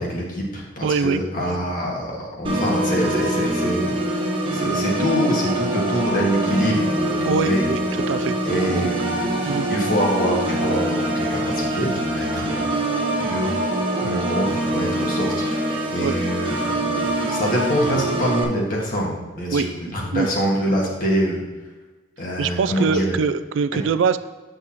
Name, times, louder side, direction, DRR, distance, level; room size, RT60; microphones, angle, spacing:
voice 1, 0.0-12.6 13.2-13.6 14.0-21.4 22.2-23.2 23.7-23.8, equal, 45° left, -2 dB, 1.6 m, -25 dB
voice 2, 0.8-1.2 7.3-7.8 8.1-8.3 8.8-8.9 9.4-9.7 16.0-16.1 19.5-19.7 20.1-20.3 22.4-24.2, right 5 dB, 70° right, 13 dB, 0.3 m, -22 dB
Organ, 2.4-18.4, right 1 dB, 25° right, 1.1 m, -24 dB
8.2 x 6.5 x 2.9 m, 1.2 s
head